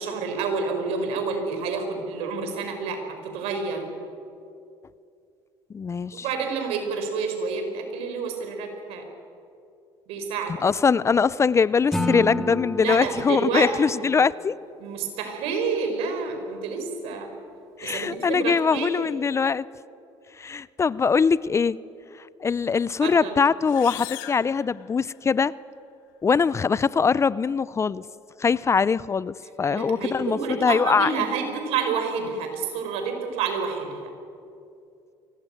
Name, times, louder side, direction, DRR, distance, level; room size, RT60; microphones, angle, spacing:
voice 1, 0.0-3.9 6.1-9.0 10.1-10.5 12.8-13.7 14.0-14.1 14.8-17.3 17.8-19.1 23.0-23.3 29.7-34.1, right 5 dB, 75° right, 5 dB, 5.2 m, -29 dB
voice 2, 5.7-6.2 10.6-14.6 17.8-19.6 20.4-21.8 22.4-25.5 26.2-28.0 28.4-31.1, left 5 dB, 25° left, 20 dB, 0.5 m, -22 dB
Acoustic guitar / Strum, 11.9-15.1, left 1 dB, 5° left, 2.4 m, -32 dB
sound 1, 23.6-25.4, left 17 dB, 90° left, 1.1 m, -40 dB
24.0 x 18.5 x 9.2 m, 2.5 s
supercardioid pair, 95°, 10 cm